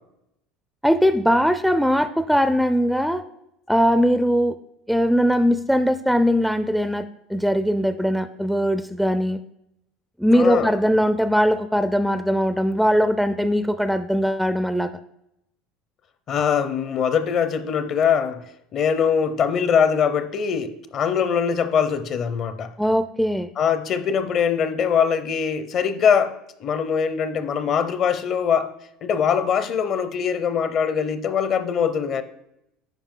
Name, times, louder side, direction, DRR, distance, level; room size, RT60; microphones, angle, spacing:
voice 1, 0.8-3.2 3.7-4.6 4.9-9.4 10.2-14.9 22.8-23.5, equal, ahead, 0.4 m, -20 dB
voice 2, 10.3-10.7 16.3-18.4 18.7-22.7 23.6-28.7 29.0-32.2, left 7 dB, 50° left, 0.7 m, -22 dB
9.2 x 5.0 x 3.8 m
supercardioid pair, 100°, 0 cm